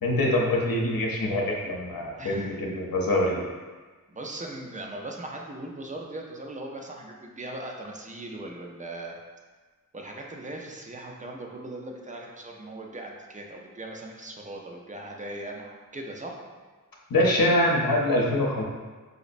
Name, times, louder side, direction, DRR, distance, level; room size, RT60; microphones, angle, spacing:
voice 1, 0.0-3.4 17.1-18.6, left 1 dB, 80° left, -1 dB, 0.7 m, -24 dB
voice 2, 2.2-2.5 4.1-9.2 9.9-16.4, right 1 dB, 20° right, 0 dB, 0.5 m, -39 dB
5.0 x 2.0 x 2.5 m, 1.4 s
wide cardioid pair, 50°, 35 cm